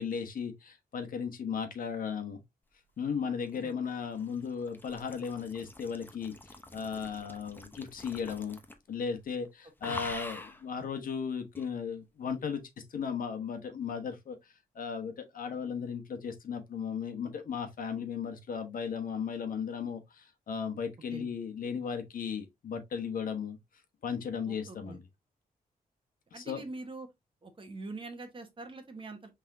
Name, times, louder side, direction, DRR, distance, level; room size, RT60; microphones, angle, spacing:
voice 1, 0.0-2.4 3.0-8.6 8.9-12.6 12.9-14.4 14.7-23.6 24.0-25.0 26.3-26.6, left 6 dB, 65° left, 1.1 m, -36 dB
sound 1, 3.2-8.9 9.2-9.5 9.8-10.6 11.5-11.7, left 2 dB, 15° left, 0.8 m, -46 dB
voice 2, 24.5-25.0 26.3-27.1 27.4-29.3, right 3 dB, 35° right, 1.1 m, -44 dB
5.5 x 3.6 x 2.6 m
wide cardioid pair, 110°, 15 cm